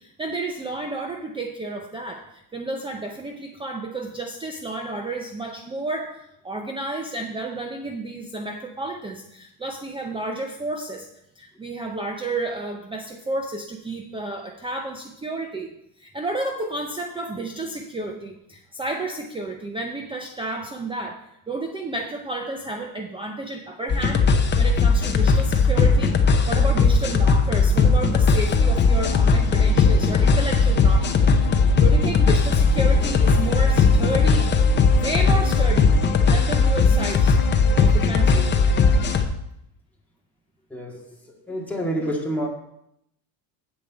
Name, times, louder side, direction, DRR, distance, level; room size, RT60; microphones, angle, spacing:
voice 1, 0.0-6.2 6.4-11.1 11.4-24.3 24.6-31.3 31.8-34.5 34.9-35.9 36.2-37.4 37.8-38.6, right 2 dB, 10° right, 3 dB, 0.6 m, -31 dB
sound 1, 23.9-39.2, left 4 dB, 25° left, 0.7 m, -18 dB
voice 2, 40.7-41.0 41.5-42.5, equal, 5° left, -3 dB, 1.9 m, -27 dB
8.0 x 4.9 x 7.2 m, 0.78 s
cardioid pair, 135°, 43 cm